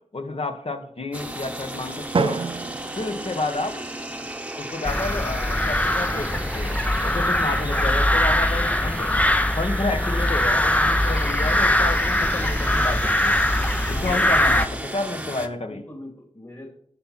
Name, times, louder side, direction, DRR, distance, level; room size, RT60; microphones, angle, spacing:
voice 1, 0.1-2.4 2.9-3.8 4.6-6.8 7.0-9.1 9.5-13.4 13.9-15.8, left 2 dB, 55° left, 6 dB, 1.3 m, -30 dB
sound 1, 1.1-15.5, right 1 dB, 10° right, 1.0 m, -34 dB
Drum, 2.1-4.1, right 5 dB, 45° right, 0.4 m, -29 dB
sound 2, 4.8-14.7, left 1 dB, 10° left, 0.6 m, -22 dB
voice 2, 13.9-14.9 15.2-16.7, left 1 dB, 30° left, 0 dB, 2.4 m, -42 dB
16.5 x 5.9 x 4.2 m, 0.65 s
wide cardioid pair, 75°, 12 cm